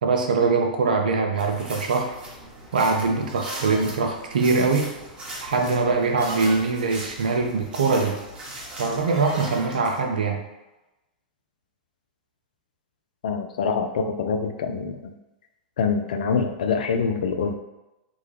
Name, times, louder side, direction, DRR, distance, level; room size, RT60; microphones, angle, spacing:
voice 1, 0.0-2.1 2.7-4.9 5.4-8.2 8.8-10.4, right 4 dB, 75° right, 3 dB, 0.6 m, -23 dB
sound 1, 1.3-1.7 3.4-4.4 6.2-7.2 9.1-10.0, right 1 dB, 50° right, 1.1 m, -37 dB
sound 2, 1.4-10.0, right 1 dB, 25° right, 1.0 m, -40 dB
voice 2, 13.2-15.1 15.8-17.5, left 5 dB, 65° left, 7 dB, 0.4 m, -25 dB
3.5 x 2.2 x 3.2 m, 0.99 s
figure-of-eight pair, 100°, 5 cm